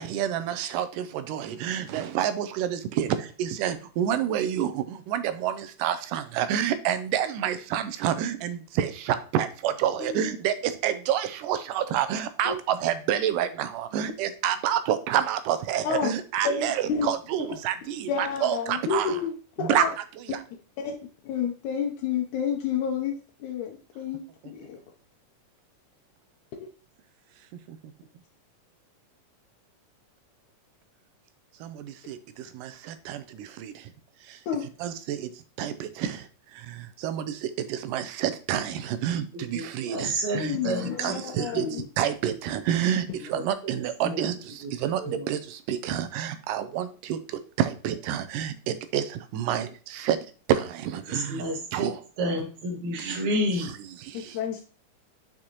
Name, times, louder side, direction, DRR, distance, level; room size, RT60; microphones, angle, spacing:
voice 1, 0.0-19.2 19.6-19.8 20.2-20.4 27.7-27.9 31.6-33.9 34.2-34.4 34.8-40.6 41.0-41.7 42.0-50.2 50.5-51.4 51.7-52.0 53.0-53.2 54.2-54.3, right 10 dB, 90° right, 11 dB, 2.2 m, -28 dB
voice 2, 10.0-10.3 12.4-12.6 15.8-16.1 16.4-17.1 18.1-19.9 20.3-20.4 20.8-21.0 21.2-23.1 23.4-24.8 26.6-26.7 34.5-34.6 40.4-41.8 54.3-54.6, left 7 dB, 75° left, 0 dB, 2.1 m, -30 dB
voice 3, 39.3-41.9 43.2-43.7 44.0-44.3 44.6-45.3 49.6-49.7 51.0-53.7, equal, 65° right, 1 dB, 2.7 m, -31 dB
6.5 x 6.0 x 2.9 m, 0.37 s
omnidirectional pair, 3.7 m